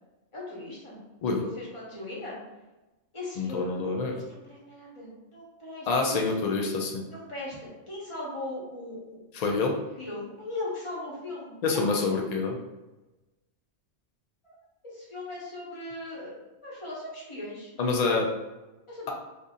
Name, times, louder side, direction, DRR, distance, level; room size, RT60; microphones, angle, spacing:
voice 1, 0.3-1.0 1.4-2.4 3.1-6.5 7.1-9.2 10.0-12.0 14.4-14.5 14.9-16.3 16.6-17.7 18.9-19.1, left 2 dB, 25° left, -6 dB, 1.0 m, -39 dB
voice 2, 3.4-4.1 5.9-7.0 9.3-9.7 11.6-12.6 17.8-18.3, left 4 dB, 90° left, 0 dB, 0.3 m, -26 dB
2.7 x 2.6 x 3.6 m, 1.1 s
omnidirectional pair, 1.2 m